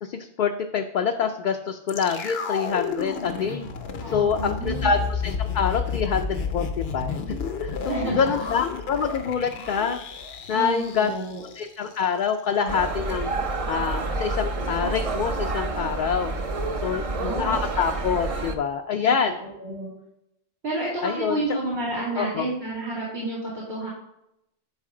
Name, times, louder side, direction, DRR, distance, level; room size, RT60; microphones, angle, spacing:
voice 1, 0.0-3.7 4.1-10.0 10.5-11.1 11.6-13.3 13.7-16.3 16.8-19.3 21.0-21.4 22.2-22.4, left 6 dB, 60° left, 5 dB, 0.6 m, -26 dB
sound 1, 1.9-12.0 12.3-12.4, left 5 dB, 75° left, 0.9 m, -31 dB
voice 2, 4.0-5.0 7.9-8.3 10.5-11.4 16.8-17.6 19.0-19.9 20.6-23.9, right 2 dB, 90° right, -6 dB, 2.8 m, -30 dB
sound 2, 12.7-18.6, right 3 dB, 40° right, 0.6 m, -29 dB
10.5 x 4.1 x 3.8 m, 0.81 s
omnidirectional pair, 1.0 m